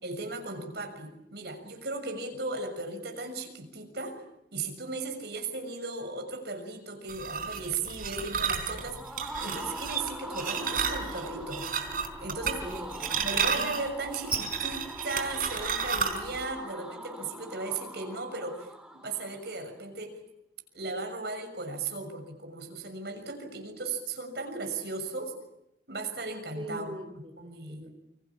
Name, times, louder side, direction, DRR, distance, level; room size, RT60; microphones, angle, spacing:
voice 1, 0.0-4.2 4.5-11.7 12.2-12.7 13.2-18.7 18.9-20.2 20.7-25.3 25.9-26.9 27.4-27.9, right 3 dB, 65° right, 6 dB, 6.5 m, -36 dB
sound 1, 7.1-16.4, right 6 dB, 50° right, 4.1 m, -32 dB
sound 2, 8.6-19.5, right 1 dB, 5° right, 2.3 m, -42 dB
voice 2, 12.6-13.7 26.5-27.9, equal, 30° right, 5 dB, 3.2 m, -42 dB
29.5 x 26.0 x 7.3 m, 0.83 s
head